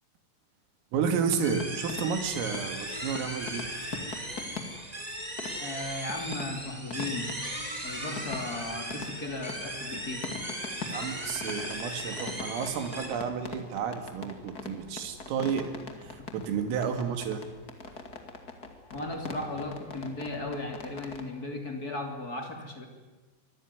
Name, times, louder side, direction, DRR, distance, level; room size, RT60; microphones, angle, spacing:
voice 1, 0.9-3.7 10.9-15.7 16.0-17.4, right 6 dB, 80° right, 7 dB, 5.0 m, -31 dB
sound 1, 1.4-21.3, left 4 dB, 50° left, 1.1 m, -43 dB
sound 2, 1.4-13.1, right 1 dB, 10° right, 3.8 m, -37 dB
voice 2, 5.6-7.4 7.8-10.3 18.9-22.9, left 2 dB, 25° left, 3 dB, 2.3 m, -36 dB
25.5 x 20.5 x 9.6 m, 1.2 s
omnidirectional pair, 5.9 m